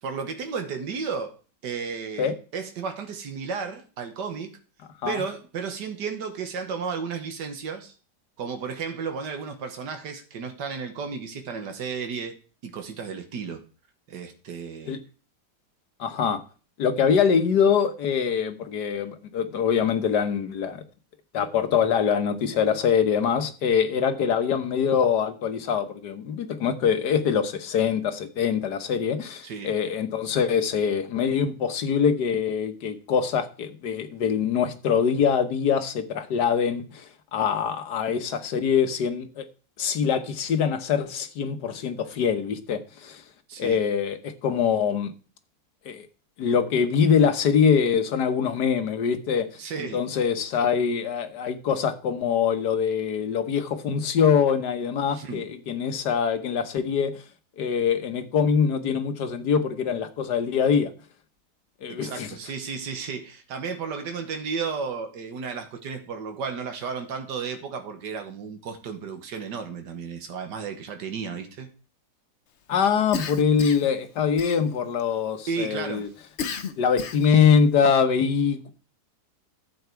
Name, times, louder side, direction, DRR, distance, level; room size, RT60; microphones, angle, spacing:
voice 1, 0.0-1.4 1.6-4.6 5.1-8.0 8.4-12.3 12.6-13.6 14.1-15.0 29.4-29.7 43.5-43.8 49.6-50.0 55.1-55.5 61.9-71.7 75.5-76.1, right 5 dB, 80° right, 1.9 m, -33 dB
voice 2, 16.0-16.4 16.8-20.8 21.3-37.0 37.3-39.4 39.8-43.2 43.6-45.1 45.9-46.1 46.4-49.5 49.8-57.1 57.6-60.9 61.8-62.3 72.7-76.1 76.8-78.7, left 7 dB, 75° left, 1.7 m, -24 dB
Cough, 73.1-73.9 74.4-75.0 76.4-77.4, left 6 dB, 50° left, 1.0 m, -33 dB
12.0 x 7.9 x 4.6 m
omnidirectional pair, 1.8 m